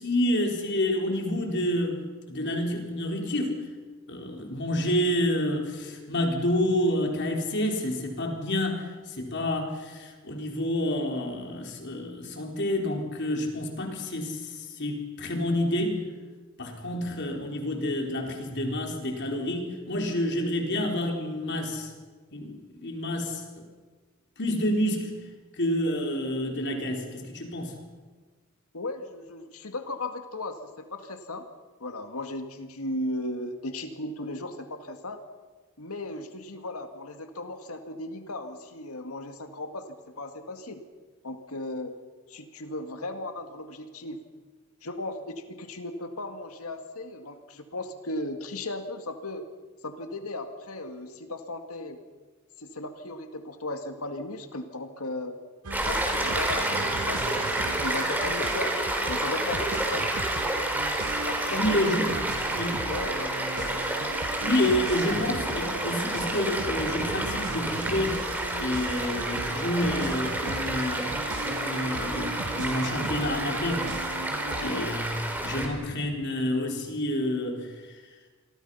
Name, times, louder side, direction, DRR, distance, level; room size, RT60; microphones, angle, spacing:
voice 1, 0.0-2.0 2.3-3.6 4.1-16.0 16.6-21.9 22.3-23.4 24.4-25.1 25.5-27.7 61.5-62.0 62.5-62.8 64.4-68.2 68.6-71.2 71.4-73.8 74.6-77.7, left 1 dB, 55° left, 2 dB, 4.4 m, -28 dB
voice 2, 28.7-31.5 31.8-35.2 35.8-40.8 41.2-41.9 42.3-44.2 44.8-49.4 49.8-52.0 52.6-55.4 55.7-58.7 59.1-60.1 61.2-62.1 62.9-63.8 64.8-64.9 74.5-74.9, left 2 dB, 85° left, 6 dB, 2.2 m, -36 dB
sound 1, 55.6-74.9, right 3 dB, 90° right, 1.2 m, -37 dB
Stream, 55.7-75.7, right 1 dB, 10° right, 3.9 m, -30 dB
28.0 x 22.5 x 5.8 m, 1.4 s
head